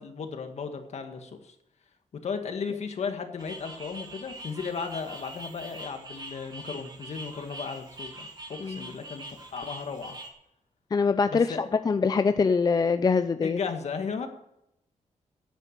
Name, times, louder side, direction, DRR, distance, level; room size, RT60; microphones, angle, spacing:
voice 1, 0.0-1.6 2.2-9.3 9.5-10.2 11.3-11.6 13.4-14.3, left 5 dB, 60° left, 6 dB, 1.8 m, -35 dB
sound 1, 3.4-10.3, right 1 dB, 35° right, 2.2 m, -43 dB
voice 2, 10.9-13.6, left 5 dB, 30° left, 10 dB, 0.5 m, -24 dB
10.5 x 9.2 x 7.4 m, 0.81 s
wide cardioid pair, 120°, 13 cm